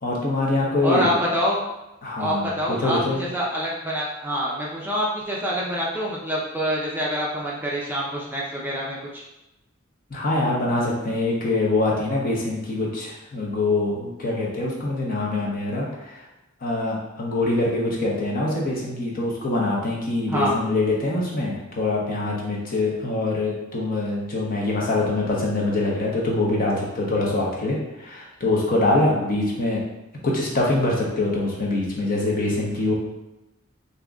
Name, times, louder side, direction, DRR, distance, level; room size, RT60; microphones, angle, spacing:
voice 1, 0.0-1.1 2.0-3.2 10.1-16.2 16.6-29.8 30.2-32.9, left 2 dB, 45° left, -3 dB, 1.0 m, -24 dB
voice 2, 0.8-1.6 2.1-9.2 20.3-20.6, equal, 10° right, -5 dB, 0.6 m, -26 dB
3.8 x 2.8 x 3.5 m, 0.98 s
head